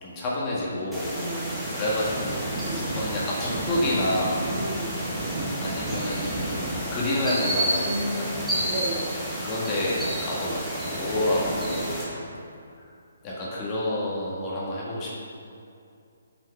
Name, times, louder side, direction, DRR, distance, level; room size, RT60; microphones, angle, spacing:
voice 1, 0.0-1.1 1.8-4.4 5.6-8.4 9.4-10.6 10.8-12.0 13.2-15.1, left 1 dB, 25° left, -6 dB, 1.6 m, -28 dB
sound 1, 0.9-12.0, right 1 dB, ahead, 1.4 m, -30 dB
voice 2, 1.1-1.7 2.6-2.9 4.5-5.1 7.8-9.2 10.4-10.5 12.0-12.5, right 1 dB, 25° right, -7 dB, 1.9 m, -34 dB
6.2 x 5.5 x 5.4 m, 2.5 s
hypercardioid pair, 145°, 0 cm